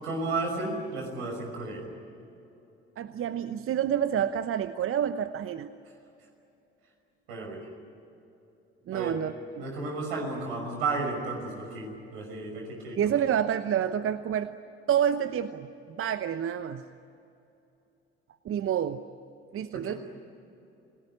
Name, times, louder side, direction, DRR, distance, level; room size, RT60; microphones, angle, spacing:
voice 1, 0.0-1.9 7.3-7.7 8.9-9.2 9.6-13.2 19.7-20.0, right 3 dB, 75° right, 2 dB, 5.8 m, -33 dB
voice 2, 3.0-5.7 8.9-9.6 13.0-14.5 14.9-16.8 18.4-19.0 19.5-20.0, right 9 dB, 45° right, 12 dB, 0.9 m, -28 dB
28.5 x 18.5 x 9.8 m, 2.9 s
figure-of-eight pair, 50°, 31 cm